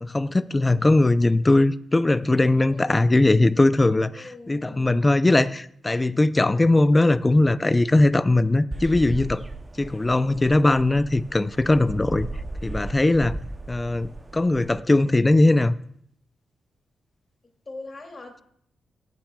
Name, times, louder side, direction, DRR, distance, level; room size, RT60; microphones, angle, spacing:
voice 1, 0.0-9.4 9.8-12.3 12.6-13.4 13.7-15.8, left 2 dB, 20° left, 14 dB, 0.4 m, -20 dB
voice 2, 2.7-3.1 4.1-5.0 17.7-18.4, left 2 dB, 35° left, 2 dB, 2.5 m, -41 dB
sound 1, 8.7-14.8, right 2 dB, 20° right, 0.6 m, -36 dB
18.5 x 8.9 x 2.3 m, 0.66 s
cardioid pair, 80°, 0 cm